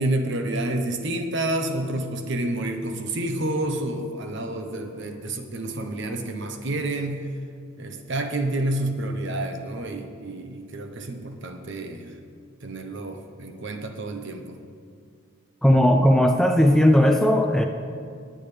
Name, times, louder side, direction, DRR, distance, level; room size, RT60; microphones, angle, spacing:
voice 1, 0.0-7.3 7.8-12.1 12.6-14.6, right 1 dB, 55° right, 5 dB, 1.0 m, -29 dB
voice 2, 15.6-17.7, equal, ahead, 3 dB, 0.4 m, -17 dB
18.5 x 8.8 x 3.4 m, 2.2 s
head